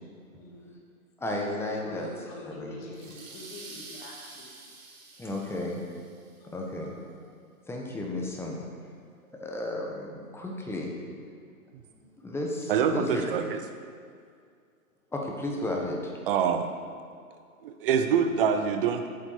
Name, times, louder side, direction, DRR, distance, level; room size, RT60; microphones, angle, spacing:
voice 1, 0.4-0.7 1.8-4.5 5.1-5.3, left 2 dB, 30° left, -2 dB, 2.3 m, -45 dB
voice 2, 1.2-2.1 2.4-2.8 5.2-5.8 6.5-6.9 7.7-8.7 9.3-10.9 11.9-13.2 15.1-16.1, left 1 dB, 5° left, -1 dB, 1.3 m, -33 dB
sound 1, 2.9-6.4, right 3 dB, 60° right, 2.2 m, -47 dB
voice 3, 12.7-13.6 16.3-16.7 17.6-19.1, right 7 dB, 40° right, 7 dB, 0.7 m, -25 dB
9.3 x 7.1 x 6.8 m, 2.2 s
figure-of-eight pair, 120°, 44 cm